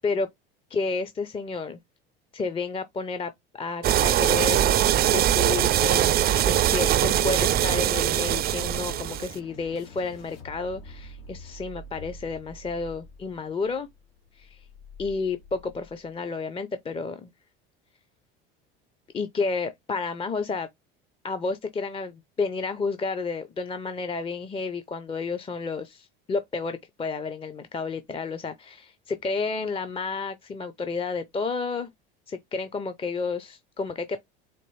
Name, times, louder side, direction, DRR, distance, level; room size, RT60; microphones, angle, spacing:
voice 1, 0.7-1.8 2.3-4.7 5.1-13.9 14.4-14.6 15.0-17.3 19.1-20.7 21.2-31.9 32.3-34.2, left 4 dB, 20° left, 0.5 m, -31 dB
sound 1, 3.8-9.3, right 11 dB, 35° right, 0.4 m, -22 dB
sound 2, 8.6-16.1, left 1 dB, 75° left, 1.5 m, -47 dB
4.4 x 2.3 x 3.1 m
hypercardioid pair, 85°, 29 cm